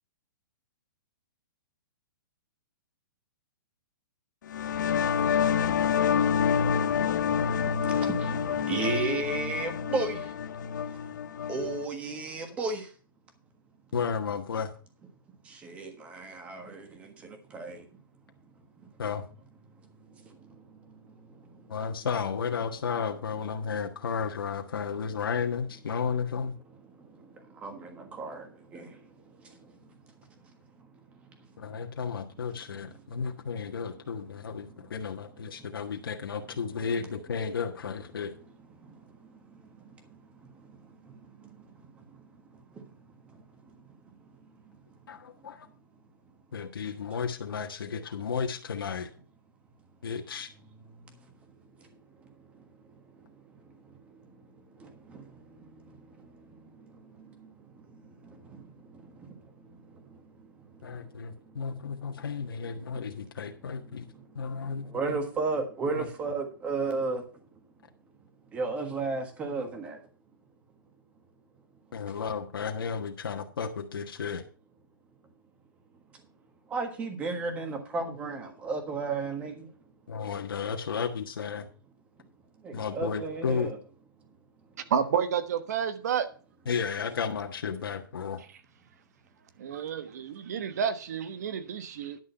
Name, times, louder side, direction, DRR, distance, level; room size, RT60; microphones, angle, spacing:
sound 1, 4.5-11.8, left 7 dB, 55° left, 0.8 m, -27 dB
voice 1, 7.1-10.2 11.5-12.8 15.6-16.9 17.5-17.8 27.6-28.5 28.7-28.9 64.9-67.2 68.5-70.0 76.7-79.7 82.6-83.8, right 3 dB, 10° right, 1.5 m, -33 dB
voice 2, 13.9-14.7 19.0-19.3 21.7-26.5 31.6-38.3 45.1-45.7 46.5-49.1 50.0-50.5 60.8-64.1 64.3-65.2 65.9-66.1 71.9-74.4 80.1-81.7 82.7-83.7 86.7-88.4, left 6 dB, 85° left, 1.5 m, -33 dB
voice 3, 84.9-86.3 89.6-92.2, right 7 dB, 50° right, 1.3 m, -30 dB
11.0 x 6.3 x 5.6 m
hypercardioid pair, 170°, 12 cm